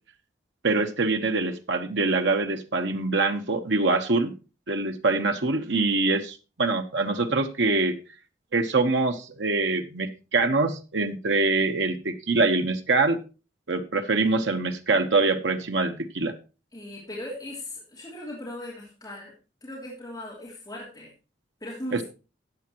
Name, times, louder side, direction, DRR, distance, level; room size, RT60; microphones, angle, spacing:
voice 1, 0.6-4.3 4.7-8.0 8.5-13.2 13.7-16.3 21.9-22.0, right 3 dB, 80° right, 6 dB, 1.1 m, -24 dB
voice 2, 16.7-19.3 19.6-21.1 21.6-22.0, left 1 dB, 20° left, -5 dB, 3.0 m, -38 dB
13.5 x 8.5 x 3.0 m, 0.32 s
head